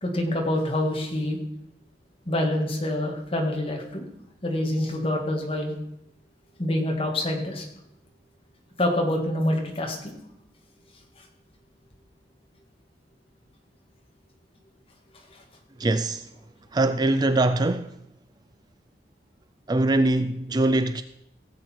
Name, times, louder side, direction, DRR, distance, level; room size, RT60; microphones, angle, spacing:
voice 1, 0.0-1.4 2.3-4.0 4.4-5.7 6.6-7.7 8.8-10.1, left 1 dB, 30° left, 1.8 m, -26 dB
voice 2, 15.8-16.3 16.7-17.9 19.7-21.0, right 2 dB, 20° right, 0.3 m, -22 dB
16.5 x 7.9 x 4.4 m
head